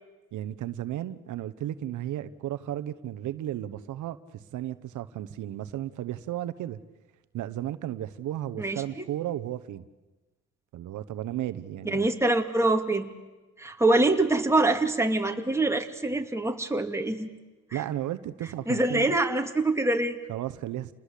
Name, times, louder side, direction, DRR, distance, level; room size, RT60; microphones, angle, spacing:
voice 1, 0.3-6.8 7.3-9.9 10.7-12.1 17.7-19.2 20.3-20.9, right 12 dB, 80° right, 11 dB, 1.1 m, -34 dB
voice 2, 11.8-13.1 13.6-17.3 17.7-17.8 18.7-20.2, right 2 dB, 10° right, 4 dB, 2.6 m, -25 dB
29.5 x 20.0 x 8.4 m, 1.2 s
cardioid pair, 90°, 30 cm